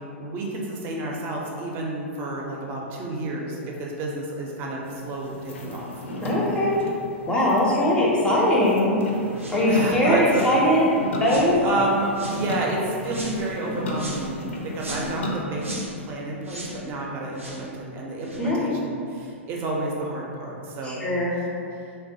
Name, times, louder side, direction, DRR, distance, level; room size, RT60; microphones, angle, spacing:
voice 1, 0.2-5.9 9.7-10.4 11.6-14.4 14.6-15.8 16.1-21.0, right 2 dB, 30° right, -2 dB, 0.5 m, -30 dB
sound 1, 4.8-15.4, left 1 dB, 70° left, 0.4 m, -35 dB
voice 2, 6.2-6.8 7.3-8.9 9.5-10.9 11.2-11.6 18.4-18.7 20.8-21.4, left 1 dB, 15° left, -5 dB, 0.5 m, -21 dB
sound 2, 9.4-9.6 10.3-10.6 11.2-11.5 12.1-12.4 13.1-13.4 13.9-14.3 14.8-15.2 15.6-15.9 16.4-16.8 17.4-17.6 18.2-18.4, right 1 dB, 85° right, 0.5 m, -36 dB
3.1 x 2.1 x 2.6 m, 2.5 s
figure-of-eight pair, 100°, 7 cm